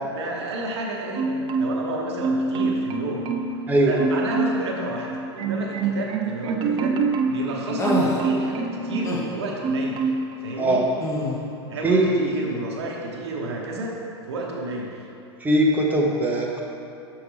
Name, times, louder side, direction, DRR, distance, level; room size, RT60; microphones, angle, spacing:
voice 1, 0.1-3.3 3.8-5.1 5.3-7.0 7.3-10.8 11.7-14.0 14.2-15.0, right 2 dB, 70° right, -1 dB, 1.0 m, -31 dB
Marimba xylophone, 1.2-1.9 2.2-3.6 4.0-4.7 5.1-9.3 9.6-10.3 10.7-10.9, right 3 dB, 35° right, 0.4 m, -26 dB
sound 1, 7.8-8.2 9.0-9.3 11.0-11.4, left 1 dB, 20° left, 1.1 m, -25 dB
voice 2, 11.8-12.3 15.4-16.6, right 1 dB, 10° right, -2 dB, 0.8 m, -20 dB
6.3 x 5.7 x 3.3 m, 2.8 s
hypercardioid pair, 95°, 14 cm